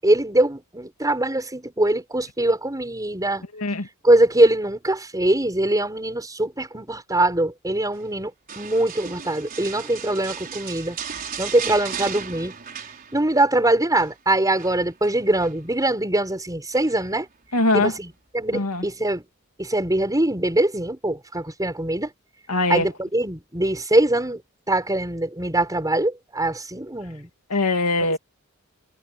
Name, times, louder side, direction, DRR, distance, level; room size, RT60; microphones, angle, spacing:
voice 1, 0.0-3.4 4.0-8.3 8.6-11.0 11.4-12.5 13.1-17.3 17.7-19.2 19.6-22.1 22.7-24.4 24.7-27.3, right 1 dB, 15° right, 6.1 m, -22 dB
sound 1, 8.5-13.5 13.7-14.1 14.6-15.6 16.7-17.2 17.7-17.8, right 7 dB, 40° right, 4.9 m, -36 dB
voice 2, 17.5-17.9 18.5-18.8 22.5-22.9 27.5-28.2, left 2 dB, 80° left, 2.6 m, -21 dB
head